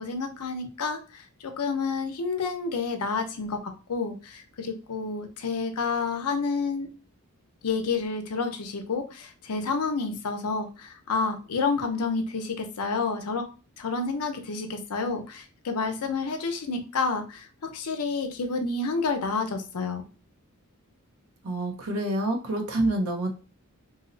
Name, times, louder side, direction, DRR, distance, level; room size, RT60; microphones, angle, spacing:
voice 1, 0.0-6.9 7.6-13.5 13.8-20.0, left 4 dB, 90° left, 6 dB, 0.6 m, -29 dB
voice 2, 21.4-23.3, right 1 dB, 70° right, 3 dB, 0.7 m, -27 dB
2.7 x 2.0 x 3.8 m, 0.35 s
head